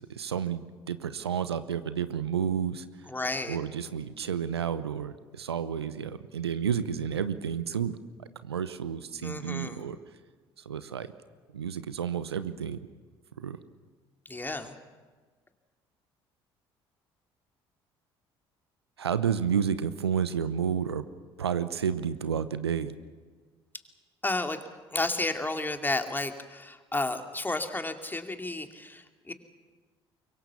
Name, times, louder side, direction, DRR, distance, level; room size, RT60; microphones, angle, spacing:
voice 1, 0.0-2.8 3.5-8.0 8.4-10.0 10.6-11.1 11.5-12.8 13.4-13.6 19.0-21.0 21.4-22.9, right 8 dB, 85° right, 13 dB, 0.9 m, -31 dB
voice 2, 3.1-3.6 9.2-9.8 14.2-14.7 24.2-24.6 24.9-29.3, left 2 dB, 15° left, 6 dB, 2.7 m, -32 dB
24.5 x 23.0 x 7.2 m, 1.5 s
figure-of-eight pair, 55°, 13 cm